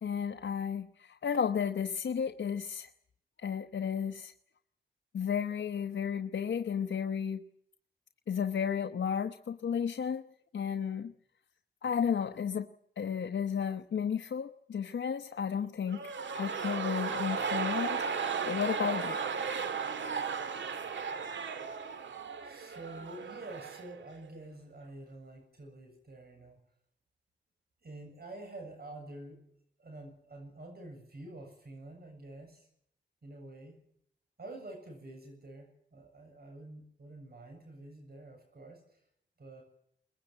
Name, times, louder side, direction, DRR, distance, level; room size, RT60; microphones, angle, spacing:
voice 1, 0.0-2.9 3.4-4.3 5.1-7.4 8.3-10.3 10.5-11.1 11.8-12.7 13.0-18.1 18.5-19.2, left 7 dB, 80° left, 6 dB, 0.9 m, -33 dB
sound 1, 15.9-24.0 24.2-24.3, right 5 dB, 90° right, 1.9 m, -35 dB
voice 2, 22.4-26.6 27.8-29.4 29.8-32.7 33.2-33.8 34.4-39.0 39.4-39.6, right 2 dB, 55° right, 3 dB, 7.7 m, -48 dB
23.0 x 20.5 x 8.8 m, 0.70 s
cardioid pair, 70°, 19 cm